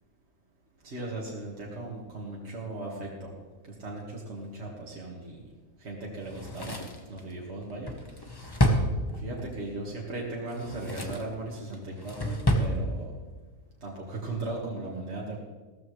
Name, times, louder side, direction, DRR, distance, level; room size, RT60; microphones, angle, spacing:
voice 1, 0.8-3.3 3.7-5.5 5.8-6.8 7.1-8.4 9.1-13.1 13.8-15.4, right 2 dB, 45° right, -4 dB, 2.1 m, -37 dB
Drawer open or close, 6.2-9.5 10.4-11.3 11.7-12.7 13.0-13.1, equal, 15° left, 1.1 m, -29 dB
16.5 x 13.5 x 3.2 m, 1.3 s
omnidirectional pair, 1.5 m